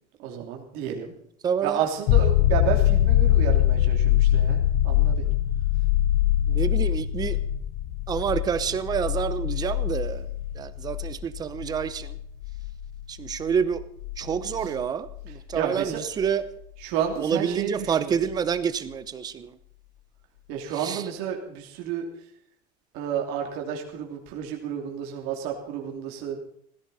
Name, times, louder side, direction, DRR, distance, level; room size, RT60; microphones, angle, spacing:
voice 1, 0.2-1.1 1.6-5.3 14.5-14.7 15.3-16.0 16.8-18.2 20.5-22.1 22.9-26.4, right 8 dB, 60° right, 1 dB, 3.0 m, -31 dB
voice 2, 1.4-1.8 6.5-7.4 8.1-10.2 10.6-12.1 13.1-13.8 14.2-16.4 17.2-19.5 20.8-21.0, right 7 dB, 20° right, 13 dB, 0.8 m, -28 dB
sound 1, 2.1-15.6 18.3-18.4, left 12 dB, 60° left, 0.9 m, -24 dB
17.0 x 16.0 x 4.2 m, 0.69 s
cardioid pair, 180°, 19 cm